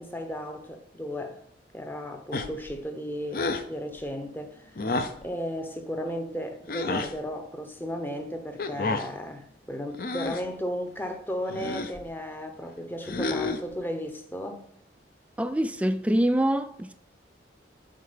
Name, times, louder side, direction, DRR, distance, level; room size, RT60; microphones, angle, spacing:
voice 1, 0.0-1.4 1.7-4.7 5.2-14.6, equal, 10° left, 0.7 m, -35 dB
sound 1, 2.3-2.7 3.3-3.7 4.8-5.2 6.7-7.1 8.6-9.1 9.9-10.5 11.5-12.0 13.0-13.7, left 3 dB, 50° left, 0.6 m, -30 dB
voice 2, 15.4-16.9, right 1 dB, 5° right, 0.3 m, -25 dB
7.6 x 4.8 x 5.2 m
head